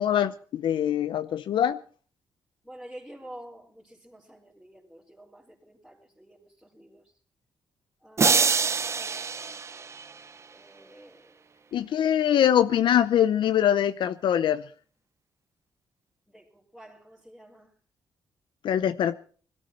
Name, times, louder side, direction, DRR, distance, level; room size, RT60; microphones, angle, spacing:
voice 1, 0.0-1.8 11.7-14.7 18.6-19.2, left 10 dB, 70° left, 0.7 m, -23 dB
voice 2, 2.6-7.1 8.0-9.8 10.5-11.4 16.3-17.7, right 1 dB, ahead, 3.7 m, -49 dB
sound 1, 8.2-10.5, right 5 dB, 35° right, 0.7 m, -25 dB
21.0 x 13.5 x 4.5 m
cardioid pair, 105°, 8 cm